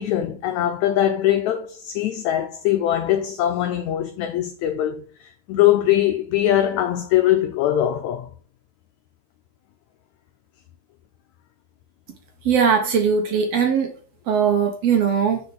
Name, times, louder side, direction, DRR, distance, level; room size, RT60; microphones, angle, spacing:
voice 1, 0.0-8.3, left 12 dB, 75° left, 1.8 m, -21 dB
voice 2, 12.5-13.9 14.3-15.4, right 6 dB, 65° right, 1.8 m, -19 dB
6.5 x 5.3 x 5.7 m
omnidirectional pair, 3.7 m